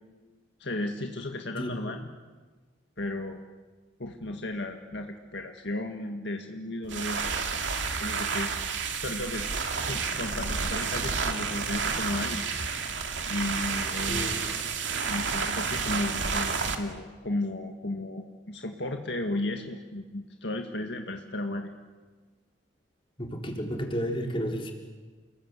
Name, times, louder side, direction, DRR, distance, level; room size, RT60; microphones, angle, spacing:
voice 1, 0.6-2.1 3.0-3.4 4.0-7.2 7.5-7.6 8.0-8.5 9.0-9.5 9.8-12.5 13.3-14.4 15.1-21.7, left 2 dB, 70° left, 3 dB, 1.9 m, -34 dB
sound 1, 6.8-16.7, right 5 dB, 85° right, 2.4 m, -30 dB
voice 2, 14.1-14.4 23.2-24.7, equal, 30° left, 1 dB, 4.0 m, -32 dB
29.5 x 21.0 x 8.4 m, 1.3 s
head